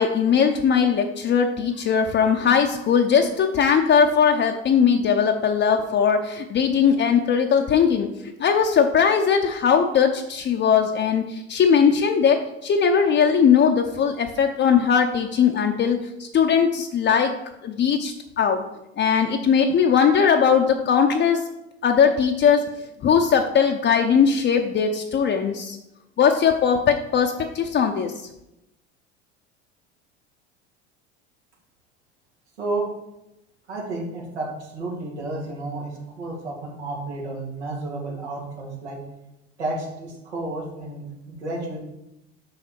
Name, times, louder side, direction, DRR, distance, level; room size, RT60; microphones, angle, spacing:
voice 1, 0.0-8.1 8.4-17.3 17.6-18.6 19.0-21.4 21.8-22.7 23.0-25.8 26.2-28.1, left 7 dB, 35° left, 4 dB, 0.7 m, -19 dB
voice 2, 33.7-39.0 39.6-41.8, right 2 dB, 90° right, -3 dB, 2.5 m, -31 dB
6.4 x 5.8 x 4.5 m, 0.89 s
hypercardioid pair, 75°, 33 cm